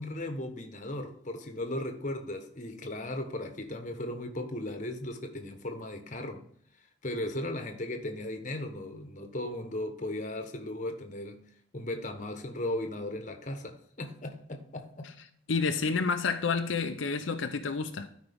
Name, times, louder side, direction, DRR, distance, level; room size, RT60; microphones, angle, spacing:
voice 1, 0.0-6.4 7.0-11.4 11.7-15.1 15.8-15.9, left 1 dB, 40° left, 1.1 m, -36 dB
voice 2, 15.5-18.1, left 4 dB, 85° left, 0.6 m, -29 dB
12.5 x 5.1 x 3.6 m
head